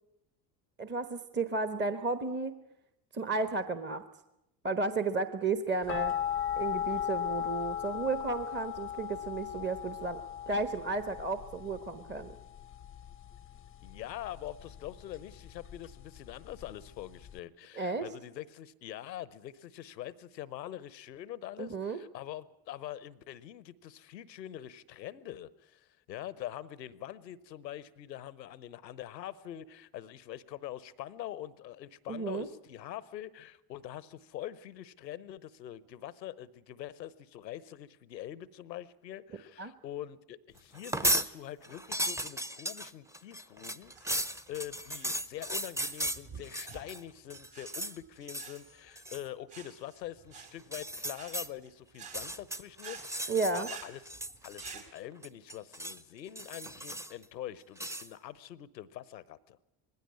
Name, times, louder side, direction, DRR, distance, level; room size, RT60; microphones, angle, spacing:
voice 1, 0.8-2.5 3.1-4.0 4.6-6.1 6.6-12.3 17.8-18.0 21.6-22.0 32.1-32.5 39.6-39.7 53.3-53.7, right 3 dB, 20° right, 11 dB, 1.2 m, -33 dB
sound 1, 5.9-17.4, left 10 dB, 25° left, 0.7 m, -37 dB
voice 2, 13.8-54.0 54.4-59.6, left 12 dB, 90° left, 19 dB, 0.9 m, -44 dB
sound 2, 40.7-41.3 41.6-47.0 47.3-48.0 48.3-48.6 49.0-49.3 50.6-51.5 52.0-53.8 54.1-55.0 55.2-56.0 56.4-57.2 57.8-58.1, right 1 dB, 5° right, 0.8 m, -35 dB
sound 3, 43.8-54.9, right 7 dB, 55° right, 4.1 m, -51 dB
20.0 x 16.5 x 9.6 m, 0.88 s
hypercardioid pair, 65°, 49 cm